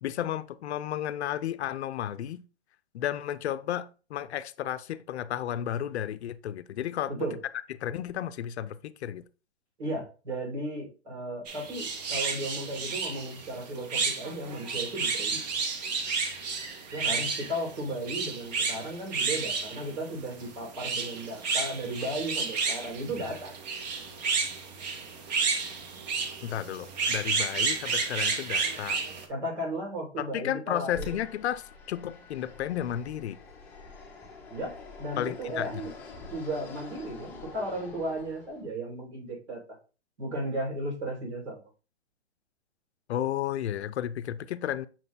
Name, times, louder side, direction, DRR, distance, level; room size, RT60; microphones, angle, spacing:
voice 1, 0.0-2.4 2.9-7.1 7.8-9.2 26.4-29.0 30.2-33.4 35.2-35.8 43.1-44.9, left 11 dB, 80° left, 0.5 m, -33 dB
voice 2, 9.8-15.4 16.9-23.5 29.3-31.2 34.5-35.9 36.3-39.6 40.2-41.6, right 1 dB, 80° right, 2.7 m, -35 dB
sound 1, 11.5-29.3, right 4 dB, 40° right, 0.7 m, -31 dB
Fixed-wing aircraft airplane, 30.9-38.7, left 4 dB, 5° left, 0.6 m, -46 dB
6.0 x 2.2 x 3.9 m
hypercardioid pair, 150°, 33 cm